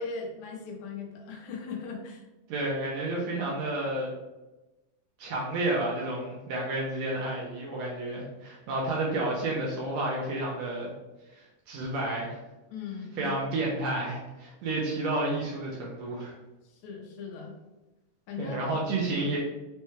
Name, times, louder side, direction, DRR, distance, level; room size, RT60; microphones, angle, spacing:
voice 1, 0.0-2.2 12.7-13.4 16.6-17.5 18.3-18.6, left 5 dB, 75° left, 0 dB, 2.1 m, -38 dB
voice 2, 2.5-4.1 5.2-10.9 11.3-12.4 13.2-16.3 18.4-19.4, right 2 dB, 75° right, -3 dB, 1.7 m, -31 dB
5.5 x 2.2 x 3.1 m, 1.1 s
omnidirectional pair, 3.5 m